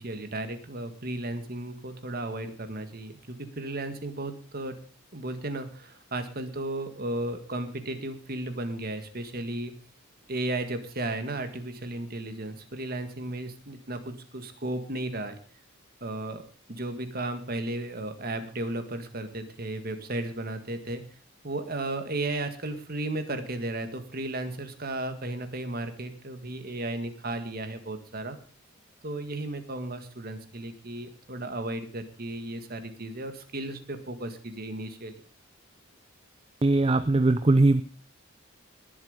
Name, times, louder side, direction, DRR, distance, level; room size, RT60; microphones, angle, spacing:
voice 1, 0.0-4.8 5.1-9.7 10.3-15.4 16.0-16.4 16.7-21.0 21.4-28.4 29.0-35.1, right 2 dB, 45° right, 8 dB, 1.9 m, -34 dB
voice 2, 36.6-37.8, right 2 dB, 25° right, 12 dB, 0.5 m, -20 dB
20.5 x 7.7 x 5.2 m, 0.39 s
head